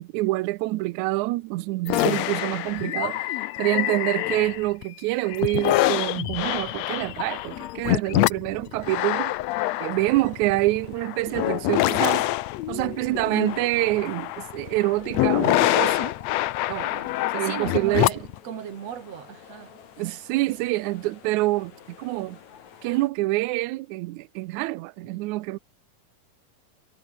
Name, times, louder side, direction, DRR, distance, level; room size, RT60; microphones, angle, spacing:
voice 1, 0.0-9.3 9.8-12.3 12.7-16.1 16.7-17.1 17.3-18.1 20.0-22.4 22.8-25.6, right 19 dB, 80° right, 1.7 m, -26 dB
sound 1, 1.9-4.8 5.3-18.4, left 16 dB, 85° left, 1.5 m, -25 dB
sound 2, 10.1-23.1, left 8 dB, 60° left, 3.6 m, -50 dB
voice 2, 17.4-19.8, right 8 dB, 50° right, 3.0 m, -36 dB
omnidirectional pair, 3.9 m